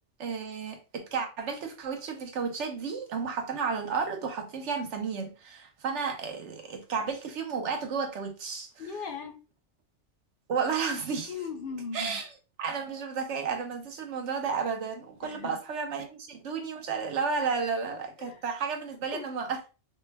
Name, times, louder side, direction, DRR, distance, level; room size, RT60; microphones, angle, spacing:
voice 1, 0.2-8.7 10.5-11.3 11.9-12.2 12.6-19.7, right 5 dB, 70° right, 1.1 m, -32 dB
voice 2, 8.8-9.4 11.3-12.2 15.2-15.6 17.5-17.7 18.2-18.4 19.1-19.3, left 5 dB, 55° left, 0.7 m, -38 dB
4.4 x 2.3 x 3.3 m
omnidirectional pair, 1.3 m